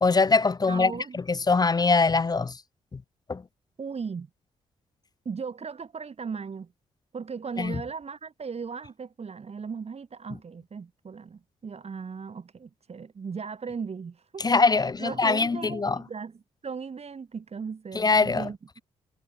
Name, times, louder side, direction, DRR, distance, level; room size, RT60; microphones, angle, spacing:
voice 1, 0.0-2.6 3.3-3.4 7.6-7.8 14.4-16.0 17.9-18.5, left 4 dB, 25° left, 0.6 m, -23 dB
voice 2, 0.7-1.2 3.8-4.3 5.3-6.7 7.1-14.4 14.8-18.8, right 5 dB, 45° right, 2.1 m, -37 dB
hypercardioid pair, 40°, 15 cm